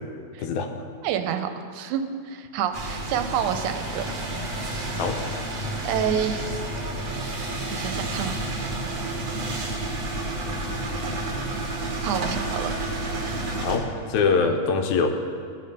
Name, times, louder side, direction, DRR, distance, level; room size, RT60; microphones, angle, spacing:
voice 1, 0.4-0.7 5.0-5.2 13.6-15.1, left 5 dB, 80° left, 5 dB, 2.0 m, -23 dB
voice 2, 1.0-4.0 5.8-6.5 7.7-8.4 12.0-12.7, right 9 dB, 85° right, 7 dB, 2.0 m, -28 dB
sound 1, 2.7-13.8, right 2 dB, 65° right, 0.9 m, -30 dB
13.5 x 5.1 x 5.5 m, 2.2 s
omnidirectional pair, 3.5 m